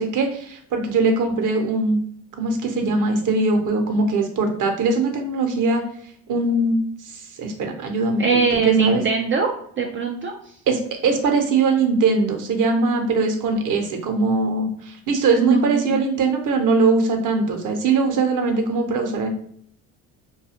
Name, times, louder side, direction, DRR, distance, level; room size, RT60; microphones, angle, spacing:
voice 1, 0.0-2.0 2.4-5.8 6.3-6.8 7.0-8.2 8.5-9.0 10.7-19.3, right 3 dB, 50° right, 4 dB, 0.8 m, -21 dB
voice 2, 8.2-9.5 9.8-10.3 15.4-16.0, right 5 dB, 30° right, 2 dB, 0.4 m, -21 dB
2.3 x 2.3 x 2.7 m, 0.64 s
hypercardioid pair, 65°, 41 cm